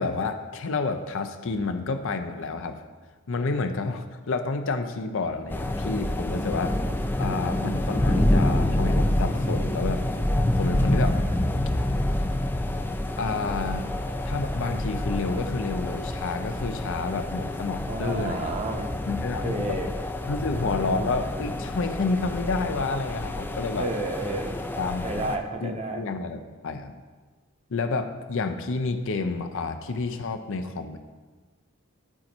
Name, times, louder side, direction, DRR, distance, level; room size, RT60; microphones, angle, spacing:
voice 1, 0.0-2.8 3.3-6.8 7.2-10.0 10.5-11.2 13.2-13.9 14.2-18.5 19.1-19.8 20.3-23.9 24.8-25.3 25.6-26.9 27.7-31.0, left 3 dB, 60° left, 8 dB, 0.6 m, -29 dB
sound 1, 5.5-25.4, left 1 dB, 10° left, 0.3 m, -27 dB
voice 2, 17.9-18.9 19.4-19.9 23.8-24.6 25.0-26.0, right 2 dB, 30° right, 4 dB, 0.8 m, -31 dB
12.0 x 4.3 x 4.4 m, 1.4 s
head